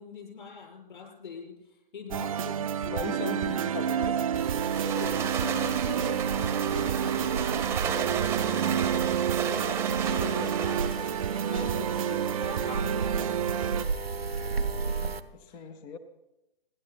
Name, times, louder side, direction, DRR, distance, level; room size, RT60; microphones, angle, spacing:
voice 1, 0.0-1.5 1.9-4.2 4.7-8.1 8.6-13.3 15.5-15.7, left 5 dB, 55° left, 0 dB, 6.6 m, -43 dB
sound 1, 2.1-13.9, right 9 dB, 35° right, 0.6 m, -29 dB
voice 2, 2.9-4.2 9.9-11.1 12.5-12.6 14.9-16.0, left 5 dB, 10° left, 13 dB, 0.4 m, -40 dB
sound 2, 4.4-15.2, right 4 dB, 85° right, 1.1 m, -35 dB
sound 3, 4.5-11.0, right 8 dB, 10° right, 0.9 m, -34 dB
28.0 x 11.0 x 4.2 m, 0.95 s
figure-of-eight pair, 130°, 29 cm